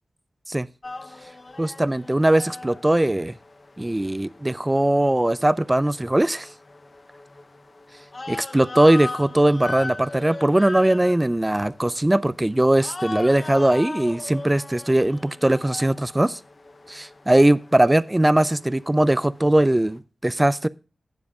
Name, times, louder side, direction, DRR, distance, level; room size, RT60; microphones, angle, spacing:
sound 1, 0.8-20.0, left 2 dB, 40° left, 0.8 m, -39 dB
voice 1, 1.6-3.3 3.8-6.5 8.3-16.4 16.9-20.7, right 1 dB, 20° right, 0.4 m, -20 dB
16.5 x 7.3 x 2.4 m
cardioid pair, 60°, 0 cm